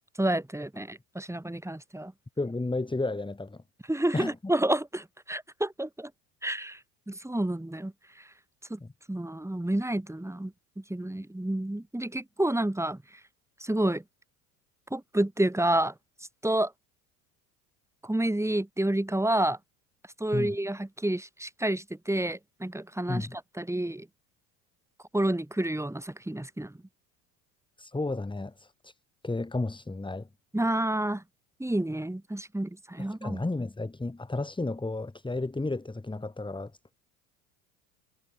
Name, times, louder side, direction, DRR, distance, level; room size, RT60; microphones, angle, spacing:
voice 1, 0.2-2.1 3.9-6.1 6.4-6.8 7.1-7.9 8.7-8.8 9.1-13.0 13.6-14.0 14.9-15.9 16.4-16.7 18.0-19.6 20.2-24.1 25.1-26.7 30.5-31.2 31.6-33.4, right 1 dB, 5° right, 6.0 m, -29 dB
voice 2, 2.4-3.6 4.1-4.3 8.8-8.9 20.3-20.6 23.1-23.3 27.8-28.9 29.2-30.3 33.0-36.9, left 2 dB, 10° left, 3.0 m, -32 dB
hypercardioid pair, 70°, 45 cm